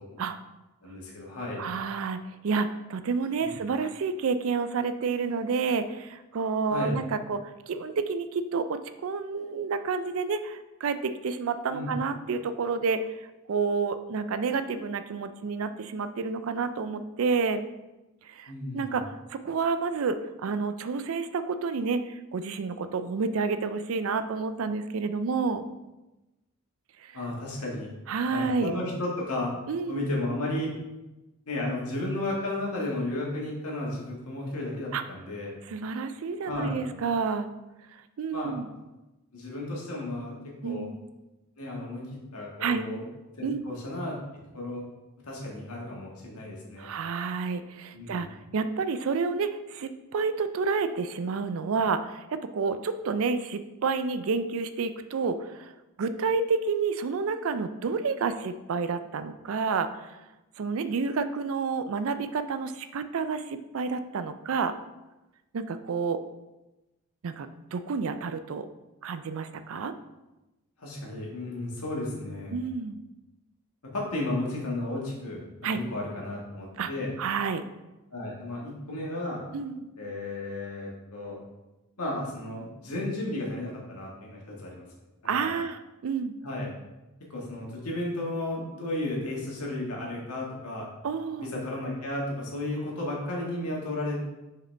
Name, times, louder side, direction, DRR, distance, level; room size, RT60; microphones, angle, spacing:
voice 1, 0.8-1.6 3.4-3.5 6.7-7.0 11.7-11.9 18.5-18.8 27.1-27.9 28.3-29.5 29.9-30.7 31.5-35.5 36.4-36.8 38.3-38.6 39.3-40.9 41.6-43.0 43.4-44.2 44.5-44.8 45.2-46.9 47.9-48.3 70.8-72.6 73.8-75.4 75.7-77.1 78.1-79.4 80.0-81.4 82.0-84.9 85.2-85.5 86.4-86.7 87.2-90.9 91.3-94.3, left 1 dB, 85° left, -3 dB, 1.7 m, -33 dB
voice 2, 1.6-13.0 13.5-17.6 18.2-25.6 27.0-27.2 28.1-28.7 29.7-30.0 34.9-35.0 35.7-37.5 38.2-38.7 40.6-41.0 42.6-42.8 43.4-43.6 46.8-48.3 48.5-55.7 56.0-60.2 60.6-64.7 65.5-66.2 67.2-68.7 69.0-69.9 72.5-73.0 75.6-75.8 76.8-76.9 77.2-77.6 79.5-79.8 85.2-86.3 91.0-91.5, right 5 dB, 65° right, 11 dB, 0.4 m, -29 dB
5.8 x 4.9 x 3.3 m, 1.0 s
head